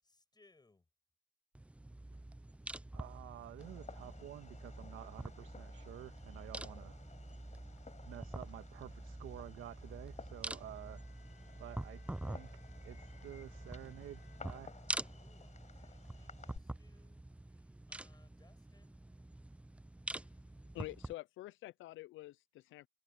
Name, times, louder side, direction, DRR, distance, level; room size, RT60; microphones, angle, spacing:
voice 1, 0.0-0.8 15.0-17.2 17.5-19.0, left 3 dB, 20° left, 7.2 m, -69 dB
sound 1, 1.6-21.1, right 1 dB, 5° right, 0.5 m, -47 dB
voice 2, 2.9-7.0 8.1-11.0 11.6-12.5 12.8-14.8, right 13 dB, 85° right, 1.7 m, -51 dB
Fireworks, 3.6-16.6, left 5 dB, 35° left, 5.6 m, -57 dB
Bowed string instrument, 10.7-15.1, left 7 dB, 55° left, 7.6 m, -68 dB
voice 3, 20.7-22.9, left 17 dB, 80° left, 0.5 m, -47 dB
cardioid pair, 90°, 20 cm